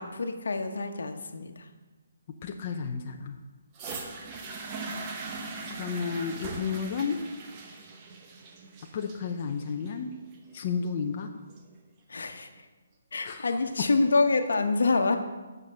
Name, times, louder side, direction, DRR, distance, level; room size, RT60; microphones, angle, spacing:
voice 1, 0.0-1.6 12.1-12.5 13.1-15.2, left 3 dB, 80° left, 6 dB, 1.1 m, -26 dB
voice 2, 2.4-3.4 5.7-7.2 8.9-10.1 10.5-11.3 13.2-13.4, left 6 dB, 30° left, 3 dB, 0.6 m, -32 dB
sound 1, 3.7-11.7 12.6-12.7, right 3 dB, 20° right, 0.9 m, -40 dB
8.5 x 6.6 x 5.5 m, 1.2 s
hypercardioid pair, 170°, 0 cm